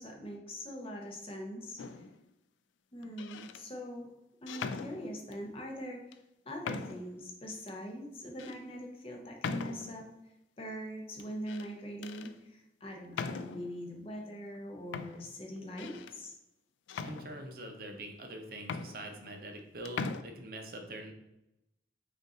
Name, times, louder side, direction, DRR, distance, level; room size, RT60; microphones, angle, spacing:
voice 1, 0.0-2.0 2.9-4.1 4.4-6.2 6.4-16.3, equal, 30° left, 1 dB, 0.7 m, -42 dB
sound 1, 1.8-2.2 3.0-3.6 4.5-5.4 6.1-6.2 6.6-7.2 7.7-7.8 8.4-8.6 9.4-10.1 11.2-11.7 12.0-12.3 13.1-13.8 14.5-14.6 14.9-16.2 16.9-17.7 18.3-18.4 18.6-19.6 19.9-20.2, left 4 dB, 80° left, 0.3 m, -40 dB
voice 2, 17.0-21.2, right 1 dB, 50° right, 4 dB, 0.6 m, -44 dB
5.3 x 2.5 x 3.8 m, 0.88 s
head